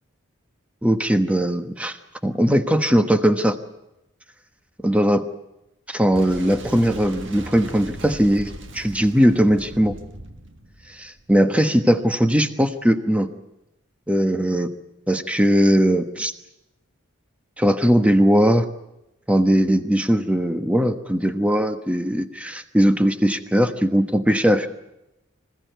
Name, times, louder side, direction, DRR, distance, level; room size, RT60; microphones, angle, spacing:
voice 1, 0.8-2.0 2.2-3.6 4.8-5.2 5.9-9.9 10.9-13.3 14.1-14.7 15.1-16.3 17.6-18.7 19.3-24.7, equal, 5° right, 8 dB, 1.1 m, -19 dB
Boom, 6.1-11.7, right 1 dB, 60° right, 1.7 m, -39 dB
25.5 x 16.5 x 9.3 m, 0.92 s
head